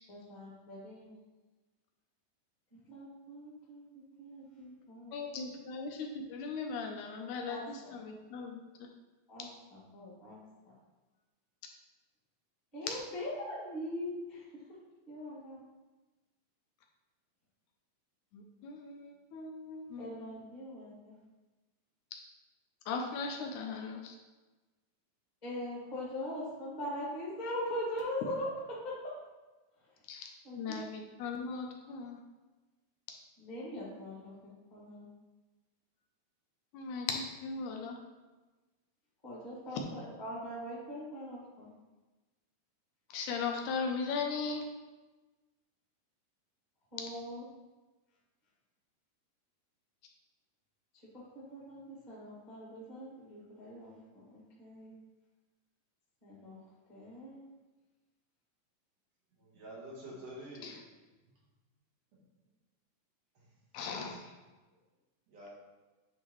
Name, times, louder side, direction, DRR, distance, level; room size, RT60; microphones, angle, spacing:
voice 1, 0.1-1.1 2.9-3.8 4.2-5.8 7.5-7.9 9.3-10.4 12.7-14.4 15.1-15.6 20.0-21.2 25.4-29.1 30.4-30.8 33.4-35.1 39.2-41.7 46.9-47.4 51.1-54.9 56.2-56.6 56.9-57.5, left 1 dB, 20° left, -6 dB, 1.2 m, -42 dB
voice 2, 5.1-8.6 12.9-13.0 18.3-20.2 22.9-24.1 30.1-30.3 30.6-32.2 36.7-38.0 43.1-44.6 60.6-60.7 63.7-64.3, left 5 dB, 75° left, 2 dB, 1.9 m, -38 dB
voice 3, 59.3-60.8 62.1-62.2 63.3-63.5 65.3-65.5, right 1 dB, 55° right, -5 dB, 2.2 m, -48 dB
9.1 x 3.6 x 3.1 m, 1.2 s
omnidirectional pair, 3.9 m